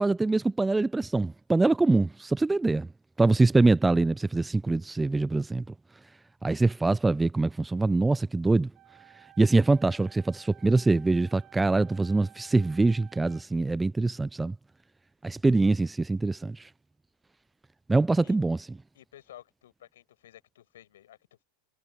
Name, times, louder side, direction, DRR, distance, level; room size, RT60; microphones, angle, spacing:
voice 1, 0.0-2.9 3.2-5.6 6.4-8.7 9.4-14.5 15.2-16.7 17.9-18.6, right 3 dB, 10° right, 0.6 m, -24 dB
sound 1, 8.7-13.7, right 14 dB, 40° right, 4.1 m, -55 dB
voice 2, 18.9-21.4, left 12 dB, 70° left, 6.9 m, -53 dB
hypercardioid pair, 90°, 0 cm